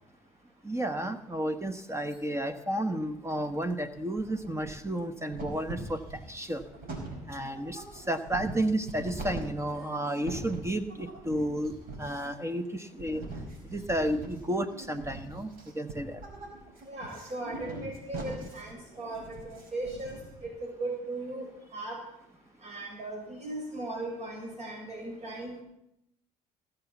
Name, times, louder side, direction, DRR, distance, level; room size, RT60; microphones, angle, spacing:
voice 1, 0.6-6.0 6.3-6.6 7.3-13.2 13.7-15.5 15.7-16.2, right 1 dB, 15° right, 8 dB, 1.2 m, -32 dB
sound 1, 3.3-3.9 4.2-5.0 5.3-20.5, right 2 dB, 60° right, 5.3 m, -42 dB
voice 2, 16.9-20.5 20.8-21.5 21.7-22.0 22.6-25.6, right 2 dB, 45° right, 1 dB, 5.9 m, -38 dB
18.5 x 7.1 x 7.2 m, 0.79 s
supercardioid pair, 70°, 16 cm